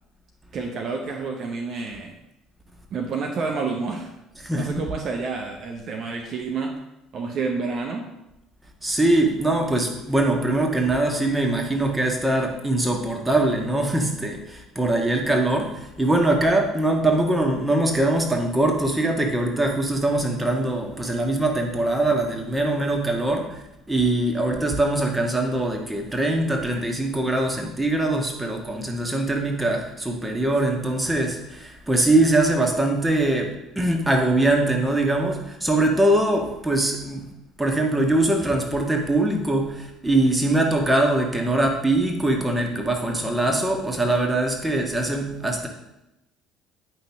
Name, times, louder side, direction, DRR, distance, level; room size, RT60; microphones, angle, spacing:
voice 1, 0.5-2.1 2.9-4.1 4.5-6.7 7.1-8.1, right 4 dB, 45° right, 2 dB, 0.9 m, -29 dB
voice 2, 4.4-4.8 8.8-23.6 23.9-33.5 33.7-37.2 37.6-45.7, right 2 dB, 10° right, 2 dB, 1.5 m, -22 dB
9.1 x 5.6 x 3.5 m, 0.92 s
figure-of-eight pair, 55°, 0 cm